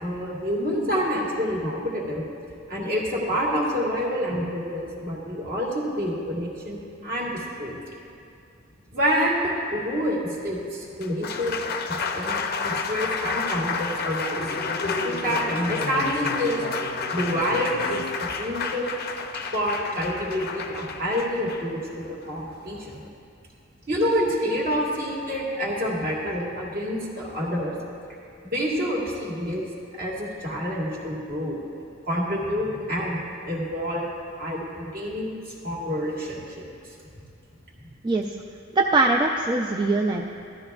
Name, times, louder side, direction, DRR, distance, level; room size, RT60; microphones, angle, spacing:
voice 1, 0.0-2.2 2.7-7.8 8.9-11.6 11.9-14.4 14.8-16.6 17.1-18.9 19.5-23.0 23.9-27.8 28.4-29.6 30.0-31.6 32.1-33.2 33.5-34.1 34.4-35.3 35.6-36.7, equal, 50° right, -4 dB, 2.1 m, -27 dB
Applause, 10.8-23.1, left 4 dB, 50° left, 0.6 m, -30 dB
voice 2, 38.7-40.2, right 2 dB, 25° right, 0 dB, 0.4 m, -22 dB
14.5 x 12.5 x 2.4 m, 2.5 s
head